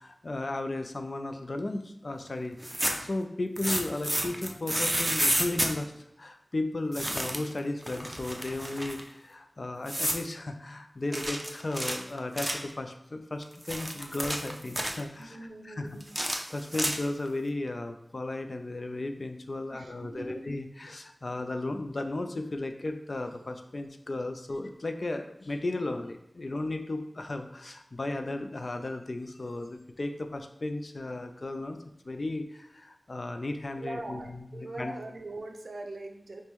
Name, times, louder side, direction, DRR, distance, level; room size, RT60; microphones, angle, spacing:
voice 1, 0.0-2.6 3.0-5.9 6.2-15.9 16.2-31.8 32.0-35.0, left 2 dB, 60° left, 6 dB, 0.3 m, -35 dB
sound 1, 2.5-3.1 3.6-5.7 6.9-7.5 7.8-9.0 9.9-10.3 11.1-12.7 13.4-15.0 16.0-17.3, right 1 dB, 15° right, 0.5 m, -30 dB
voice 2, 15.2-16.1 19.7-20.4 33.8-36.4, right 2 dB, 80° right, 4 dB, 0.4 m, -42 dB
5.0 x 2.1 x 3.0 m, 0.81 s
wide cardioid pair, 45°, 0 cm